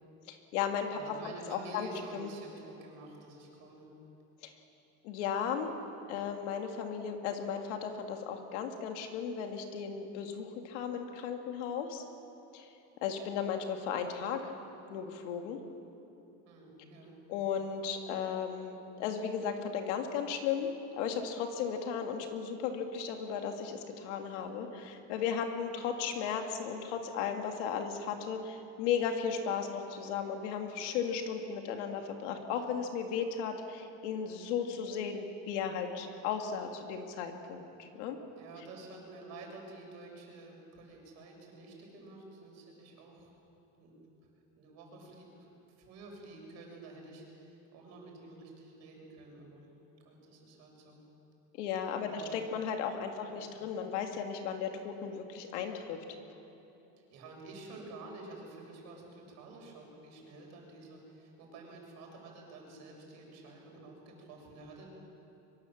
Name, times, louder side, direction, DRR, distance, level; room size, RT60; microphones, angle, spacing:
voice 1, 0.3-1.1 1.5-1.9 2.1-2.3 4.4-4.5 5.0-5.7 6.1-12.0 12.5-12.7 13.0-14.5 14.9-15.6 17.3-20.7 21.0-38.2 51.6-56.0, left 7 dB, 85° left, 4 dB, 2.6 m, -35 dB
voice 2, 0.9-3.9 16.4-17.2 38.3-43.3 43.7-43.9 44.6-45.5 45.8-49.7 50.0-51.0 51.9-52.3 53.2-53.4 57.0-64.9, right 2 dB, 50° right, 0 dB, 6.4 m, -50 dB
23.5 x 23.0 x 7.5 m, 2.9 s
cardioid pair, 165°, 35 cm